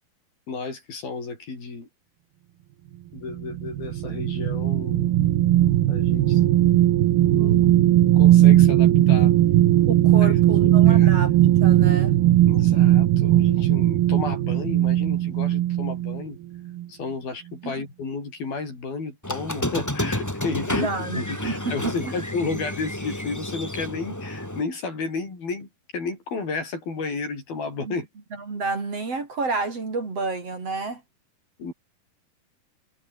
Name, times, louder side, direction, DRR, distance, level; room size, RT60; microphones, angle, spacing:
voice 1, 0.5-1.9 3.1-5.1 5.9-6.6 7.3-9.3 10.2-11.3 12.4-16.4 16.9-25.7 25.9-28.1 31.6-31.7, left 4 dB, 75° left, 9.4 m, -32 dB
sound 1, 3.3-16.2 16.7-16.9, right 13 dB, 85° right, 3.3 m, -18 dB
voice 2, 9.9-11.3 11.6-12.2 17.6-17.8 20.8-22.2 27.8-28.0 28.3-31.0, right 3 dB, 40° right, 5.3 m, -30 dB
Squeak, 19.2-24.6, left 1 dB, 5° left, 2.3 m, -30 dB
omnidirectional pair, 4.3 m